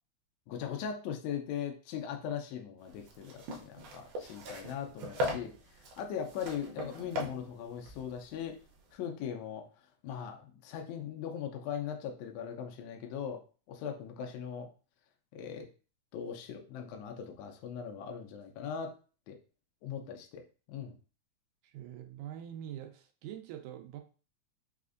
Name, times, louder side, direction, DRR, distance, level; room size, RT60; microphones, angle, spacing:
voice 1, 0.5-5.5 6.0-8.6 8.9-9.7 10.0-13.4 13.7-14.7 15.3-15.7 16.1-18.9 19.3-19.4 19.8-20.4 20.7-21.0, left 8 dB, 80° left, 4 dB, 1.7 m, -39 dB
sound 1, 2.9-8.9, left 1 dB, 70° right, 1.5 m, -40 dB
voice 2, 21.6-24.0, right 11 dB, 90° right, 4 dB, 2.0 m, -44 dB
5.0 x 2.4 x 2.4 m, 0.36 s
omnidirectional pair, 3.4 m